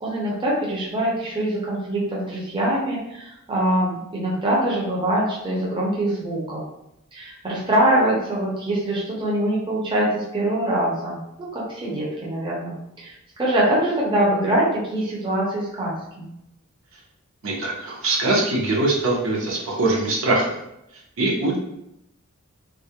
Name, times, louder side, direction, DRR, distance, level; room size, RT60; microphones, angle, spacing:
voice 1, 0.0-6.6 7.1-16.3, right 1 dB, 20° right, -5 dB, 0.5 m, -24 dB
voice 2, 17.4-20.6 21.2-21.6, right 2 dB, 65° right, -3 dB, 0.6 m, -22 dB
2.3 x 2.1 x 2.7 m, 0.84 s
head